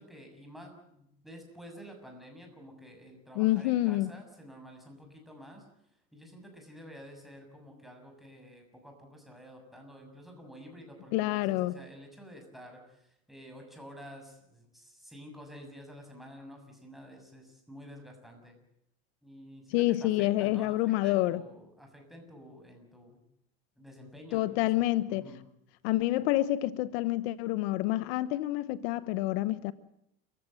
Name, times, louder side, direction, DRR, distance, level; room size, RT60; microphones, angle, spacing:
voice 1, 0.0-5.6 6.1-12.8 13.3-18.5 19.2-23.2 23.8-24.7 25.1-25.4, equal, ahead, 6.8 m, -50 dB
voice 2, 3.3-4.1 11.1-11.8 19.7-21.4 24.3-25.3 25.8-29.7, left 16 dB, 85° left, 1.0 m, -28 dB
29.5 x 15.0 x 7.8 m
cardioid pair, 135°, 30 cm